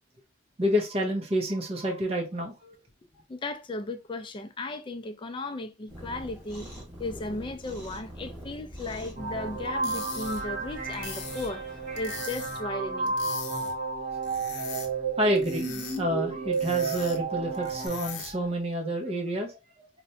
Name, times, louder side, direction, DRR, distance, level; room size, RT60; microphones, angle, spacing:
voice 1, 0.6-2.7 15.2-15.7 16.0-19.9, equal, 35° right, 0.6 m, -29 dB
voice 2, 3.3-6.7 7.0-11.6 11.9-13.2, left 2 dB, 25° left, 0.4 m, -35 dB
Cat, 5.9-12.5, equal, 15° right, 1.8 m, -44 dB
sound 1, 9.2-17.9, right 4 dB, 50° right, 1.0 m, -32 dB
sound 2, 9.6-18.5, left 5 dB, 65° left, 0.7 m, -42 dB
4.2 x 2.1 x 2.7 m
head